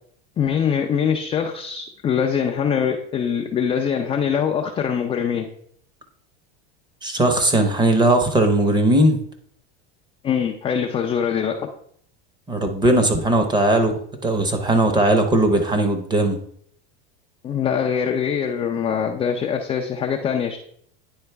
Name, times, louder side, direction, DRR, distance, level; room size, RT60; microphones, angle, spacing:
voice 1, 0.4-5.5 10.2-11.7 17.4-20.6, left 7 dB, 15° left, 2 dB, 0.3 m, -23 dB
voice 2, 7.0-9.2 12.5-16.4, right 1 dB, 15° right, 6 dB, 0.7 m, -18 dB
9.6 x 3.9 x 3.3 m, 0.64 s
supercardioid pair, 145°, 33 cm